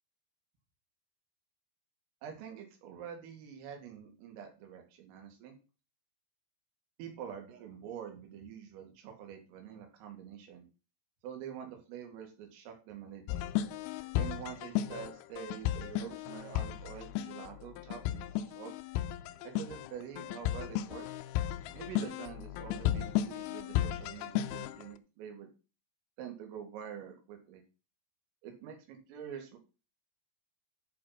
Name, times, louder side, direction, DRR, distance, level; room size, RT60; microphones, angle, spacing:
voice 1, 2.2-5.6 7.0-10.6 11.2-13.5 14.2-18.7 19.4-21.1 21.7-25.5 26.2-27.6 28.4-29.6, right 8 dB, 80° right, 3 dB, 4.8 m, -46 dB
sound 1, 13.3-24.8, left 12 dB, 85° left, 3.1 m, -35 dB
11.0 x 5.0 x 5.9 m, 0.32 s
omnidirectional pair, 5.8 m